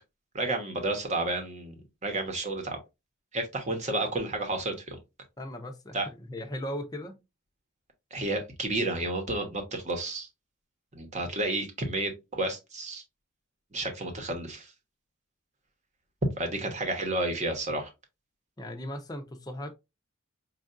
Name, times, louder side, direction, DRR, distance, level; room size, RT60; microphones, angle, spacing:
voice 1, 0.3-1.7 2.0-2.8 3.3-5.0 5.9-6.1 8.1-10.3 10.9-13.0 13.7-14.7 16.4-17.9, right 2 dB, 35° right, 1.0 m, -31 dB
voice 2, 5.4-7.2 18.6-19.7, left 1 dB, 20° left, 0.6 m, -38 dB
5.4 x 2.4 x 2.5 m
head